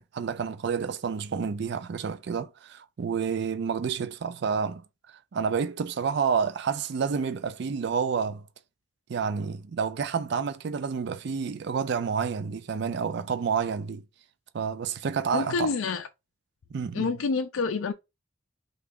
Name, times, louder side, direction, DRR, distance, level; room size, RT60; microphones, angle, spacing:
voice 1, 0.0-4.8 5.3-8.4 9.1-14.0 14.5-15.7 16.7-17.1, right 6 dB, 55° right, 0.4 m, -29 dB
voice 2, 15.3-16.1 16.9-17.9, left 4 dB, 80° left, 0.4 m, -28 dB
3.4 x 2.3 x 3.5 m
head